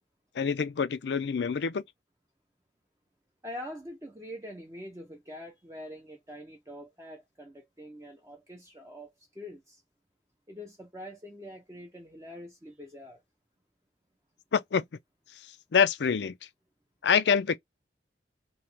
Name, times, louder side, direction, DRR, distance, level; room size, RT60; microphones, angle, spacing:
voice 1, 0.3-1.8 14.5-14.8 15.7-16.4 17.0-17.6, left 6 dB, 70° left, 0.4 m, -25 dB
voice 2, 3.4-9.8 10.5-13.2, equal, 15° right, 0.6 m, -44 dB
3.0 x 2.9 x 3.3 m
head